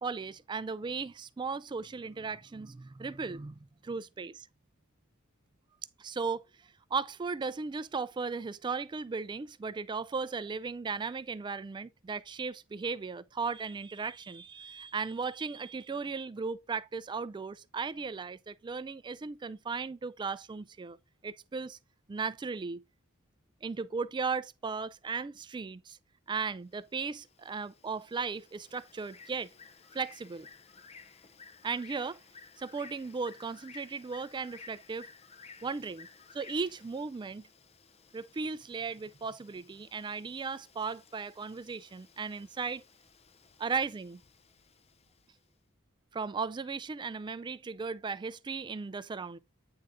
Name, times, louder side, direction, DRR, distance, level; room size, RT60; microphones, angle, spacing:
voice 1, 0.0-4.5 6.0-21.0 21.2-21.8 22.1-22.8 23.6-26.0 26.3-29.5 29.9-30.5 31.6-32.2 32.6-35.1 35.6-36.1 36.3-37.5 38.1-42.8 43.6-44.2 46.1-49.4, right 4 dB, 20° right, 0.3 m, -36 dB
Bird, 26.6-45.4, left 5 dB, 30° left, 0.5 m, -56 dB
8.8 x 3.9 x 3.5 m
head